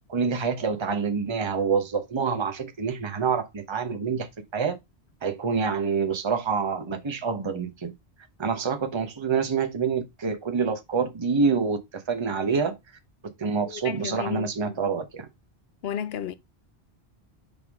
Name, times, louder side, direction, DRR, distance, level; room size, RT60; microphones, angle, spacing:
voice 1, 0.1-4.3 4.5-4.8 5.2-7.9 8.4-12.7 13.4-15.3, right 5 dB, 30° right, 0.9 m, -26 dB
voice 2, 13.6-14.8 15.8-16.3, left 9 dB, 70° left, 0.9 m, -33 dB
5.7 x 5.2 x 3.5 m
omnidirectional pair, 1.1 m